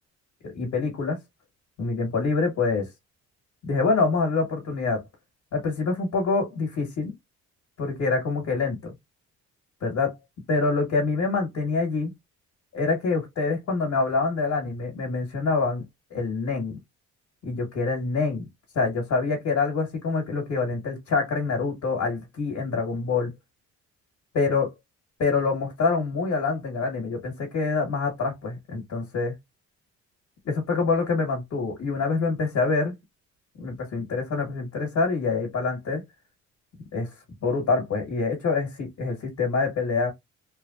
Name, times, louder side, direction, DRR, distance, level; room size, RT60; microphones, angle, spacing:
voice 1, 0.4-1.2 1.8-2.9 3.6-5.0 5.5-7.1 7.8-8.9 9.8-10.1 10.5-12.1 12.7-15.8 16.1-16.8 17.4-18.5 18.7-23.3 24.3-24.7 25.2-29.3 30.4-32.9 33.6-36.0 36.9-37.1 37.4-40.1, left 4 dB, 70° left, 1.4 m, -26 dB
3.2 x 2.2 x 2.4 m
cardioid pair, 90°, 30 cm